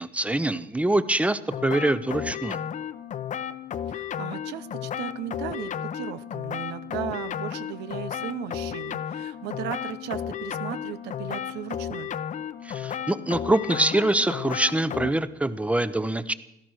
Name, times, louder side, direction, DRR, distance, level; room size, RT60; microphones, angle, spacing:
voice 1, 0.0-2.6 12.6-16.3, right 1 dB, 10° right, 14 dB, 0.8 m, -24 dB
sound 1, 1.5-15.1, left 9 dB, 45° left, 0.8 m, -33 dB
voice 2, 3.9-12.1, right 11 dB, 90° right, 13 dB, 0.8 m, -36 dB
16.5 x 13.0 x 6.4 m, 0.82 s
cardioid pair, 110°, 17 cm